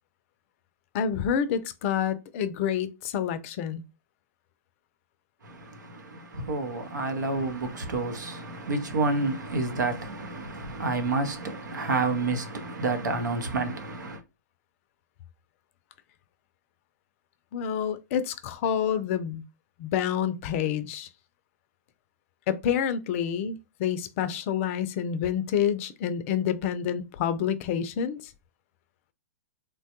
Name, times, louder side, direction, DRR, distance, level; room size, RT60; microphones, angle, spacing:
voice 1, 0.9-3.8 17.5-19.4 19.8-21.1 22.5-28.3, left 8 dB, 50° left, 0.4 m, -28 dB
voice 2, 5.4-14.2, right 3 dB, 85° right, 0.8 m, -29 dB
3.1 x 2.2 x 2.9 m
hypercardioid pair, 125°, 10 cm